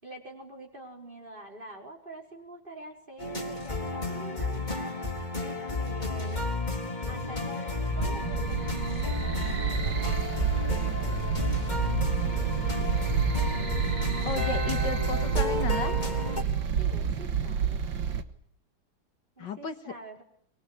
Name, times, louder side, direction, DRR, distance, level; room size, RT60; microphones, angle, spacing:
voice 1, 0.0-4.6 5.4-6.5 7.1-13.3 16.8-17.9 19.4-20.2, right 1 dB, 25° right, 2 dB, 5.3 m, -47 dB
sound 1, 3.2-16.4, left 3 dB, 20° left, 3.7 m, -32 dB
sound 2, 7.9-18.2, right 7 dB, 75° right, 2.3 m, -29 dB
voice 2, 14.3-15.9 19.4-19.7, left 5 dB, 65° left, 7 dB, 2.1 m, -34 dB
23.5 x 22.5 x 9.9 m, 0.67 s
omnidirectional pair, 2.1 m